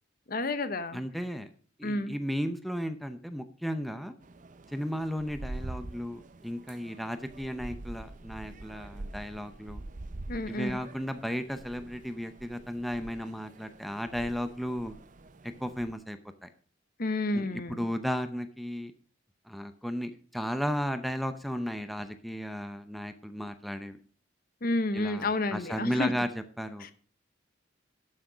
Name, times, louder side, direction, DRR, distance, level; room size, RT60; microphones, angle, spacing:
voice 1, 0.3-1.0 1.8-2.1 10.3-10.8 17.0-17.9 24.6-26.1 26.8-26.9, left 2 dB, 50° left, 12 dB, 0.9 m, -30 dB
voice 2, 0.9-1.5 1.8-4.2 4.7-9.8 10.5-15.0 15.4-16.5 17.3-18.9 19.5-24.0 24.9-26.9, equal, ahead, 8 dB, 0.7 m, -34 dB
sound 1, 4.2-15.9, right 2 dB, 40° right, 0.6 m, -45 dB
11.5 x 6.4 x 5.0 m, 0.43 s
head